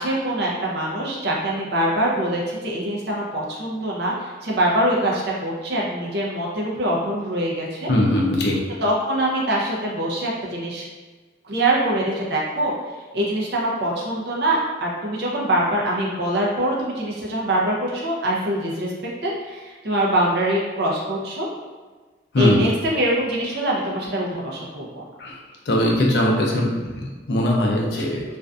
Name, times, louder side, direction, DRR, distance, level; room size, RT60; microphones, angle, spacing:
voice 1, 0.0-7.9 8.8-10.8 11.4-12.7 13.1-18.9 19.2-21.5 22.4-25.0, right 1 dB, 60° right, -3 dB, 0.5 m, -24 dB
voice 2, 7.9-8.6 22.3-22.6 25.2-25.4 25.7-28.2, left 1 dB, 60° left, -1 dB, 0.5 m, -20 dB
2.5 x 2.3 x 2.3 m, 1.4 s
head